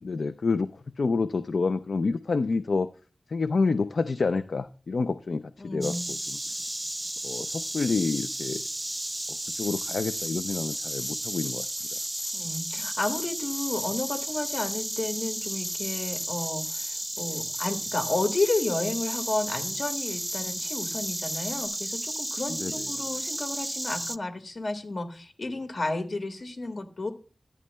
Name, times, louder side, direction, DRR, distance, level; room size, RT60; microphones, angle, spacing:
voice 1, 0.0-2.9 3.3-6.4 7.2-8.6 9.3-11.7 11.9-12.0 22.5-22.9, left 4 dB, 80° left, 11 dB, 0.4 m, -28 dB
voice 2, 5.6-6.1 12.3-27.1, left 2 dB, 65° left, 5 dB, 1.7 m, -32 dB
Insect, 5.8-24.2, right 1 dB, 20° right, 0.3 m, -33 dB
sound 1, 9.5-21.7, left 1 dB, 30° left, 2.0 m, -43 dB
14.0 x 9.4 x 2.2 m, 0.38 s
wide cardioid pair, 55°, 0 cm